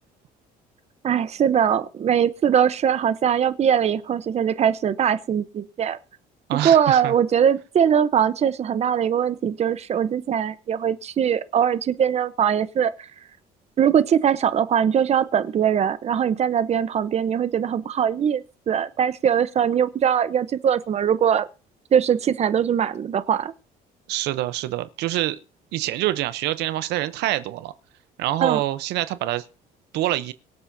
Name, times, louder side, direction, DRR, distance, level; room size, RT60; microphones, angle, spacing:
voice 1, 1.0-6.0 6.6-13.1 13.8-21.5 21.9-23.5 28.4-28.6, right 8 dB, 40° right, 0.7 m, -21 dB
voice 2, 6.5-7.1 24.1-25.4 25.7-27.7 28.2-29.4 29.9-30.3, right 15 dB, 85° right, 0.7 m, -25 dB
24.0 x 8.3 x 2.7 m
cardioid pair, 110°, 17 cm